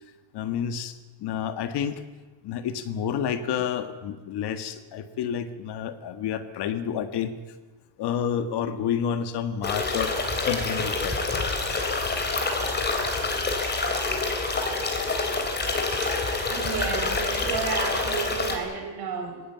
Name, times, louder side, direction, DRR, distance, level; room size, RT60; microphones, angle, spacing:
voice 1, 0.3-2.0 2.4-7.3 8.0-11.2, left 8 dB, 55° left, 10 dB, 1.7 m, -29 dB
sound 1, 9.6-18.6, left 3 dB, 20° left, 3.4 m, -27 dB
voice 2, 16.0-19.4, right 6 dB, 50° right, 3 dB, 5.6 m, -32 dB
19.5 x 17.0 x 9.2 m, 1.3 s
cardioid pair, 160°, 47 cm